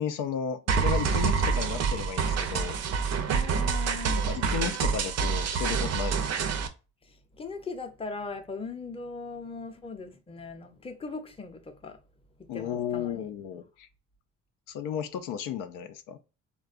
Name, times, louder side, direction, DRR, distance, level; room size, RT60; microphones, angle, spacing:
voice 1, 0.0-2.8 4.1-6.5 12.5-13.9 14.7-16.2, left 8 dB, 80° left, 0.5 m, -34 dB
sound 1, 0.7-6.7, right 6 dB, 50° right, 0.6 m, -27 dB
voice 2, 3.3-4.3 7.4-12.0 12.5-13.2, left 4 dB, 15° left, 0.6 m, -39 dB
3.6 x 2.2 x 2.4 m
cardioid pair, 80°, 32 cm